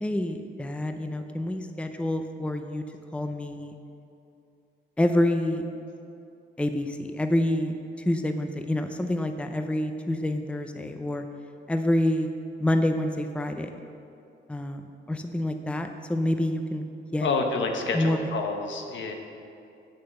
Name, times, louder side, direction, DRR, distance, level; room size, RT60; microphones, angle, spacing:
voice 1, 0.0-2.8 3.1-3.8 5.0-5.6 6.6-11.2 11.7-12.3 12.6-13.7 14.5-14.8 15.1-16.9 17.1-17.3 17.9-18.2, left 1 dB, 5° left, 6 dB, 0.6 m, -27 dB
voice 2, 17.2-19.1, left 3 dB, 70° left, 3 dB, 1.2 m, -28 dB
7.8 x 6.6 x 7.9 m, 2.6 s
cardioid pair, 95°, 20 cm